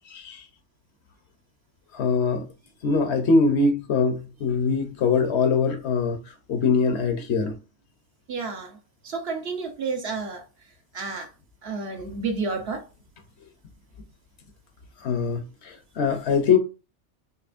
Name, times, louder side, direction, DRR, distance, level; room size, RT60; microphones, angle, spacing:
voice 1, 0.1-0.4 1.9-2.4 2.8-6.2 6.5-7.5 15.0-16.6, left 4 dB, 65° left, 1.0 m, -22 dB
voice 2, 8.3-8.7 9.0-10.4 10.9-11.3 11.6-12.8, right 4 dB, 60° right, 1.0 m, -30 dB
4.3 x 3.0 x 2.4 m
omnidirectional pair, 1.2 m